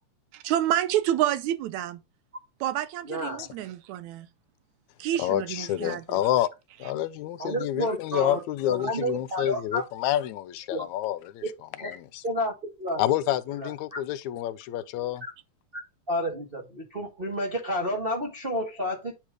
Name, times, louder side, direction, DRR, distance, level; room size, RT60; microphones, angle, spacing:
voice 1, 0.4-2.0 2.6-4.3 5.0-6.2, right 12 dB, 80° right, 2.0 m, -28 dB
voice 2, 3.0-3.4 7.4-8.4 8.7-9.8 10.7-10.9 11.8-12.0 12.2-13.0 13.6-14.0 15.2-15.3 15.7-15.8 16.1-19.1, equal, 30° right, 1.1 m, -30 dB
voice 3, 5.2-6.5 6.8-11.4 11.8-12.2 13.0-15.3, left 13 dB, 80° left, 1.9 m, -28 dB
8.8 x 3.1 x 4.8 m
omnidirectional pair, 3.4 m